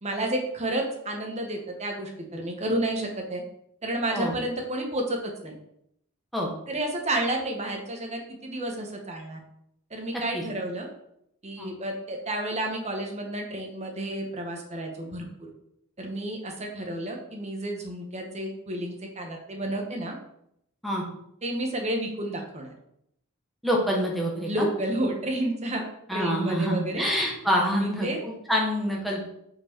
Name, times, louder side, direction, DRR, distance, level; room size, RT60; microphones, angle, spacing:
voice 1, 0.0-3.4 3.8-5.5 6.7-9.4 9.9-10.9 11.4-15.3 16.0-20.1 21.4-22.7 24.5-25.8 26.1-27.1 27.7-28.2, right 1 dB, 30° right, 2 dB, 1.1 m, -31 dB
voice 2, 23.6-24.7 26.1-29.3, equal, ahead, -3 dB, 1.3 m, -26 dB
5.0 x 4.6 x 4.5 m, 0.76 s
head